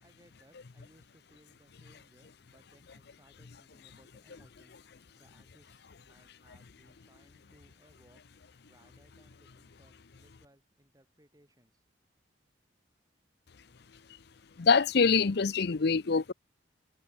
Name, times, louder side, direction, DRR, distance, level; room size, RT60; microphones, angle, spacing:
voice 1, 0.0-4.8 5.2-8.2 8.7-11.8, right 1 dB, 20° right, 6.3 m, -64 dB
voice 2, 14.6-16.3, left 5 dB, 60° left, 0.6 m, -24 dB
head